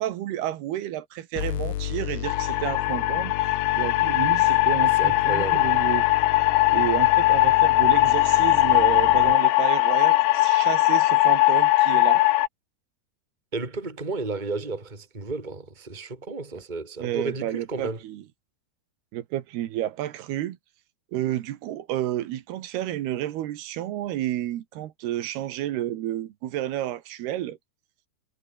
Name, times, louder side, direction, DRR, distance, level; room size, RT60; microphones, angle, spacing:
voice 1, 0.0-3.3 3.8-6.0 6.7-12.2 17.0-18.2 19.1-20.6 21.1-27.6, right 13 dB, 70° right, 3.2 m, -30 dB
sound 1, 1.4-9.4, left 12 dB, 65° left, 2.7 m, -34 dB
sound 2, 2.2-12.5, left 18 dB, 90° left, 3.2 m, -20 dB
voice 2, 4.8-5.7 13.5-18.0, right 3 dB, 10° right, 3.8 m, -33 dB
omnidirectional pair, 4.9 m